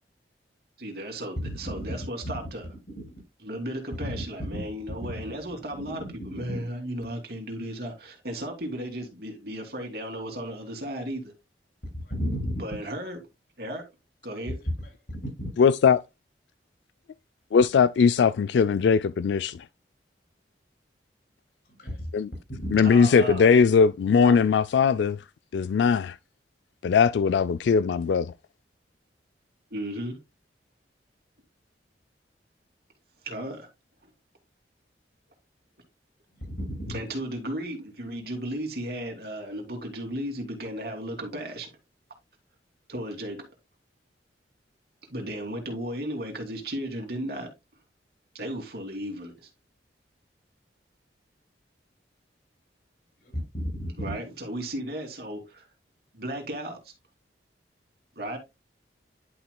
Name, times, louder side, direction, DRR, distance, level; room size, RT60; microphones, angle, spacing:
voice 1, 0.8-2.7 3.4-11.3 12.6-13.2 13.6-13.9 14.2-14.5 22.8-23.5 24.2-24.4 29.7-30.2 33.2-33.7 36.9-41.7 42.9-43.4 45.1-47.5 48.3-49.5 54.0-55.7 56.1-56.9 58.2-58.4, right 1 dB, 55° right, 2.8 m, -35 dB
voice 2, 1.4-1.9 2.2-2.3 3.0-3.1 4.5-4.6 5.8-5.9 6.3-6.6 12.0-12.6 14.6-14.7 15.4-15.5 21.7-22.1 22.6-22.8 36.3-37.0 53.2-54.1, equal, 55° left, 5.4 m, -33 dB
voice 3, 15.6-16.0 17.5-19.6 22.1-22.3 22.7-25.2 25.5-26.2 26.8-28.3, left 6 dB, 75° left, 0.3 m, -20 dB
11.0 x 6.0 x 2.2 m
head